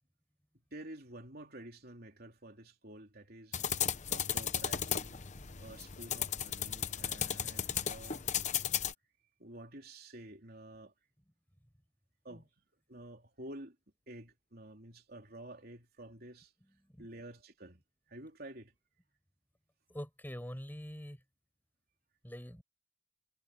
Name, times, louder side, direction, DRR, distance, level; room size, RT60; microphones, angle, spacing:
voice 1, 0.5-3.6 4.0-5.2 5.6-8.3 9.4-10.9 12.2-12.5 12.9-13.8 14.1-16.5 17.0-17.8 18.1-18.7, right 1 dB, 55° right, 3.6 m, -50 dB
sound 1, 3.5-8.9, left 9 dB, 40° left, 0.9 m, -35 dB
voice 2, 19.9-21.2 22.2-22.6, equal, 10° left, 6.6 m, -44 dB
head